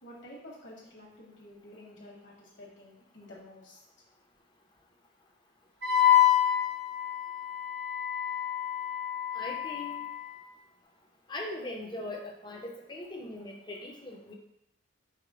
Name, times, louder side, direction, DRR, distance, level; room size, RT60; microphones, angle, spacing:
voice 1, 0.0-3.8, left 1 dB, 60° left, -3 dB, 1.3 m, -50 dB
Wind instrument woodwind instrument, 5.8-10.4, left 10 dB, 55° right, 0.7 m, -27 dB
voice 2, 9.3-10.1 11.3-14.3, left 1 dB, 20° left, 0 dB, 0.6 m, -40 dB
4.8 x 2.1 x 4.7 m, 0.81 s
head